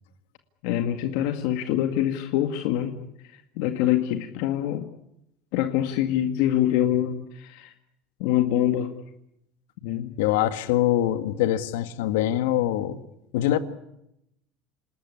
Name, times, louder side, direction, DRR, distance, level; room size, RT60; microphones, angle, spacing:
voice 1, 0.6-3.0 3.3-4.9 5.5-7.7 8.2-8.9 9.8-10.1, left 12 dB, 70° left, 2.0 m, -25 dB
voice 2, 10.2-13.0 13.3-13.6, left 13 dB, 90° left, 1.9 m, -23 dB
28.0 x 19.5 x 9.9 m
cardioid pair, 145°, 0 cm